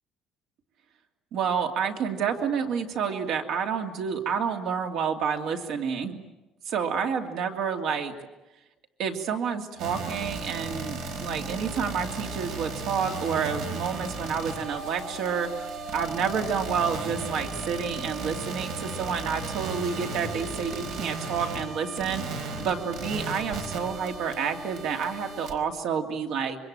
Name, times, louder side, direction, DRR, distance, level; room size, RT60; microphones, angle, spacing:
voice 1, 1.3-6.2 6.7-8.1 9.0-15.5 15.9-26.6, right 6 dB, 60° right, 4 dB, 2.7 m, -29 dB
sound 1, 9.8-25.5, right 3 dB, 75° right, 4.4 m, -35 dB
26.0 x 23.5 x 8.9 m, 1.0 s
cardioid pair, 175°, 0 cm